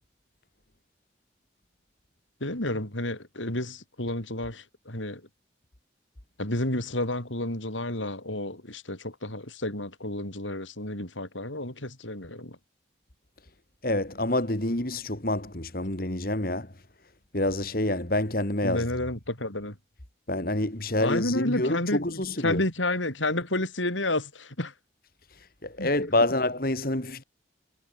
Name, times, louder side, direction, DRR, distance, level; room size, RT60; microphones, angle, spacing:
voice 1, 2.4-5.2 6.4-12.6 18.6-19.8 21.0-24.7 25.8-25.9, left 1 dB, 90° left, 7.7 m, -30 dB
voice 2, 13.8-16.8 17.3-18.9 20.3-22.6 25.3-27.2, left 1 dB, 50° left, 2.7 m, -27 dB
head